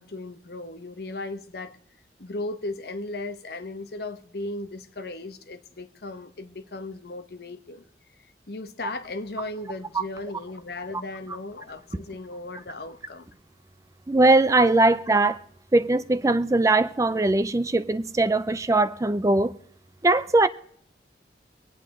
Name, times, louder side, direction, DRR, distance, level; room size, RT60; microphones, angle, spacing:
voice 1, 0.0-1.8 2.2-7.9 8.5-13.3, left 2 dB, 60° left, 0.9 m, -36 dB
voice 2, 14.1-15.4 15.7-19.5 20.0-20.5, right 2 dB, 20° right, 0.4 m, -20 dB
25.0 x 8.8 x 3.7 m
head